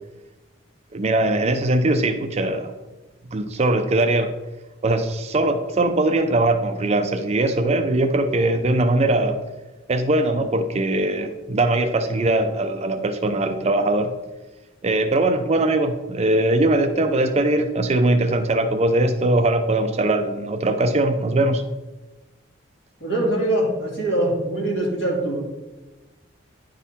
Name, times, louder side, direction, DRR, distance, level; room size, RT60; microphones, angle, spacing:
voice 1, 0.9-2.7 3.3-4.4 4.8-9.4 9.9-14.1 14.8-21.6, right 2 dB, 35° right, 8 dB, 0.4 m, -21 dB
voice 2, 23.0-25.4, right 1 dB, 60° left, -4 dB, 2.7 m, -23 dB
10.0 x 3.8 x 4.1 m, 1.1 s
head